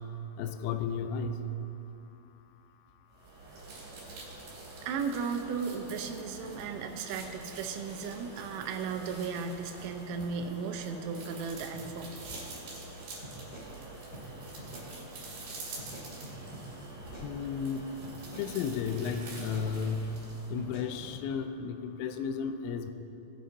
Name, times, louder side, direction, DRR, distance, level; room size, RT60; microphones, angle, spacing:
voice 1, 0.4-1.3 17.2-17.8 18.3-20.1 20.5-22.9, left 6 dB, 85° left, 8 dB, 2.7 m, -33 dB
sound 1, 3.1-21.0, right 2 dB, 65° right, 4.2 m, -46 dB
voice 2, 4.8-12.2, right 5 dB, 85° right, 5 dB, 3.2 m, -35 dB
sound 2, 11.7-11.9 12.2-12.9 13.2-13.7 14.1-14.3 14.6-14.9 15.8-16.7 17.0-17.7 18.0-18.5 18.9-19.1 19.4-19.7 20.6-21.2, right 1 dB, 35° left, 1.6 m, -47 dB
19.0 x 9.0 x 2.7 m, 2.8 s
omnidirectional pair, 5.6 m